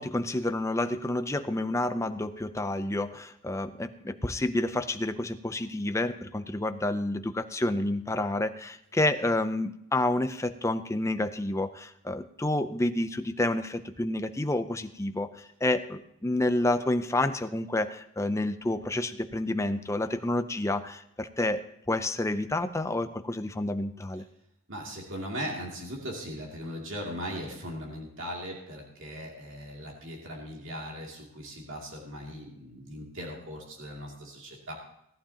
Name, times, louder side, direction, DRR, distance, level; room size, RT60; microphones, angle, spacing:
voice 1, 0.0-24.2, left 1 dB, 15° left, 10 dB, 0.5 m, -29 dB
voice 2, 24.7-34.7, equal, 55° right, -1 dB, 2.5 m, -39 dB
18.0 x 11.5 x 2.9 m, 0.79 s
head